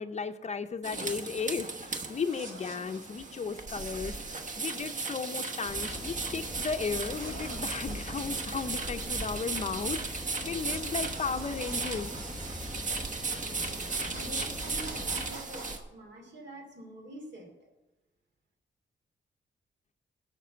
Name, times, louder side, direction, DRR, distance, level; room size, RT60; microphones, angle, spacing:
voice 1, 0.0-12.1, left 5 dB, 35° left, 9 dB, 0.6 m, -35 dB
sound 1, 0.8-15.8, right 4 dB, 40° right, 1.1 m, -36 dB
sound 2, 2.0-3.4 6.9-8.5 10.6-13.2 13.6-15.8, right 3 dB, 85° right, 2.2 m, -47 dB
sound 3, 5.6-15.3, left 1 dB, ahead, 1.2 m, -43 dB
voice 2, 13.3-17.5, right 1 dB, 65° right, 3 dB, 2.6 m, -46 dB
12.0 x 6.0 x 7.8 m, 1.0 s
wide cardioid pair, 175°, 19 cm